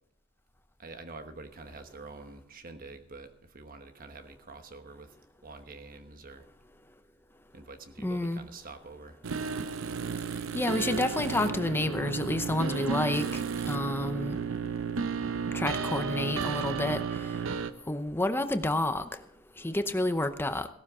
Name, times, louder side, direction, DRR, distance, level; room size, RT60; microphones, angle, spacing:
voice 1, 0.8-5.2 5.4-6.5 7.5-9.2, right 3 dB, 45° right, 8 dB, 1.2 m, -46 dB
voice 2, 8.0-8.4 10.5-14.4 15.5-17.0 17.9-19.1 19.6-20.7, left 1 dB, 10° left, 9 dB, 0.7 m, -29 dB
sound 1, 9.2-17.7, right 6 dB, 70° right, 0.7 m, -33 dB
17.5 x 12.0 x 3.7 m, 0.73 s
head